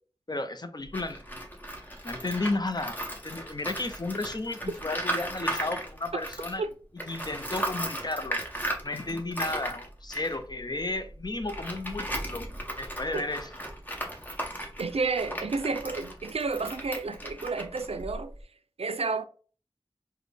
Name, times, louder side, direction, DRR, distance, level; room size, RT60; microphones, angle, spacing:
voice 1, 0.3-1.2 2.0-6.6 7.1-8.4 8.8-12.5 12.8-13.5, left 2 dB, 45° left, 0.5 m, -33 dB
Tools, 0.8-6.7 7.0-18.4, right 1 dB, 15° left, 1.0 m, -36 dB
voice 2, 14.8-18.3 18.8-19.2, right 4 dB, 80° right, 0.4 m, -31 dB
4.0 x 2.1 x 3.2 m
wide cardioid pair, 45°, 10 cm